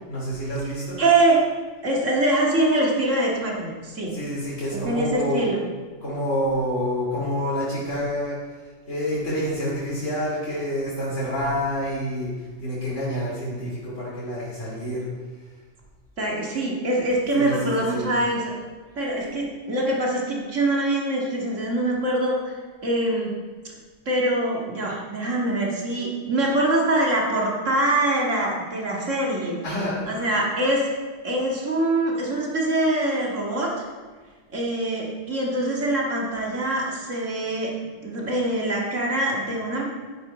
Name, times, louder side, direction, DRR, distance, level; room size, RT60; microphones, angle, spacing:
voice 1, 0.1-1.0 4.1-5.5 6.0-8.4 8.9-12.3 12.6-15.1 17.3-18.1 29.6-30.3, equal, 75° left, -6 dB, 3.0 m, -28 dB
voice 2, 1.0-1.5 1.8-4.1 4.7-5.6 16.2-18.5 19.0-23.3 24.1-29.6 30.0-30.9 31.2-33.9 34.5-37.7 38.0-39.8, right 1 dB, 80° right, -3 dB, 2.4 m, -24 dB
12.0 x 9.8 x 4.3 m, 1.4 s
omnidirectional pair, 1.3 m